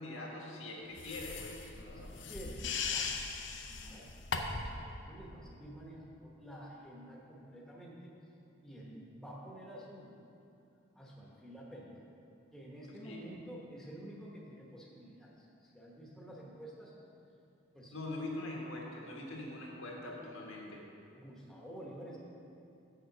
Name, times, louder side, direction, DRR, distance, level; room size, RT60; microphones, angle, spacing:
voice 1, 0.0-2.1 13.0-13.3 17.9-20.8, left 2 dB, 80° left, -2 dB, 1.7 m, -43 dB
sound 1, 1.0-4.8, left 5 dB, 60° left, 0.6 m, -39 dB
voice 2, 1.8-4.1 4.4-8.1 8.6-10.2 10.9-12.0 12.5-16.9 17.7-18.0 21.2-22.2, right 1 dB, ahead, -4 dB, 1.0 m, -50 dB
7.1 x 6.6 x 6.0 m, 2.7 s
head